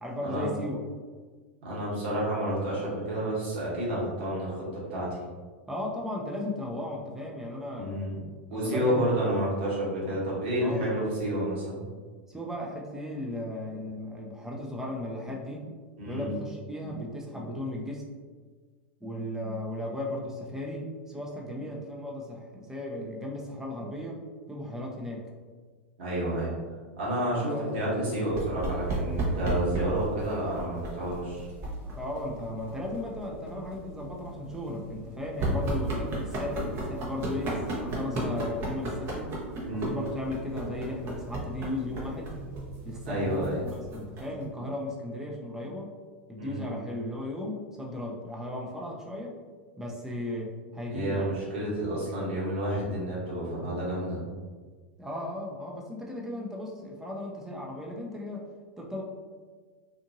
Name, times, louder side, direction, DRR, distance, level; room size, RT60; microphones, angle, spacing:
voice 1, 0.0-0.8 5.7-8.0 8.5-9.1 10.6-11.0 12.3-15.8 16.1-18.0 19.0-24.2 24.5-25.2 27.4-27.8 31.8-39.3 39.7-42.3 42.8-45.9 46.3-49.4 49.8-51.3 55.0-58.5 58.8-59.0, left 1 dB, 5° right, -2 dB, 0.6 m, -36 dB
voice 2, 1.6-4.6 4.9-5.2 7.7-8.2 8.5-11.8 16.0-16.3 26.0-26.5 27.0-31.5 39.6-39.9 43.1-43.6 46.4-46.6 50.9-54.2, right 1 dB, 65° right, -6 dB, 1.3 m, -30 dB
sound 1, 28.3-44.4, right 1 dB, 40° right, 0.8 m, -35 dB
2.7 x 2.5 x 2.8 m, 1.5 s
hypercardioid pair, 100°, 6 cm